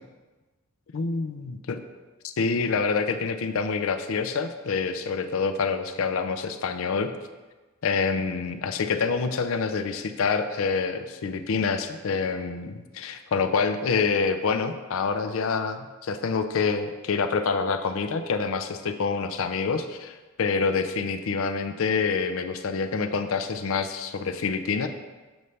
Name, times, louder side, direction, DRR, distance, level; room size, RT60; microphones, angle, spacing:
voice 1, 0.9-1.8 2.2-7.1 7.8-24.9, left 5 dB, 65° left, 8 dB, 0.5 m, -27 dB
7.0 x 3.2 x 5.4 m, 1.2 s
head